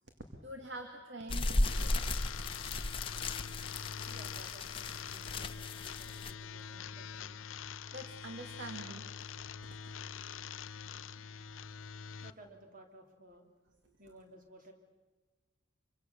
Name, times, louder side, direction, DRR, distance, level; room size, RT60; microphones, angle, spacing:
voice 1, 0.2-2.2 7.9-9.9 10.4-10.5 11.2-11.9 12.1-12.2, right 1 dB, 60° right, 4 dB, 2.3 m, -47 dB
sound 1, 1.3-6.3, left 2 dB, 25° left, 1.0 m, -35 dB
sound 2, 1.6-12.3, left 7 dB, 85° left, 0.7 m, -44 dB
voice 2, 3.6-7.5 7.8-7.9 12.1-13.5 14.0-14.7, right 1 dB, 45° right, 3 dB, 3.1 m, -57 dB
26.0 x 25.0 x 6.9 m, 1.3 s
head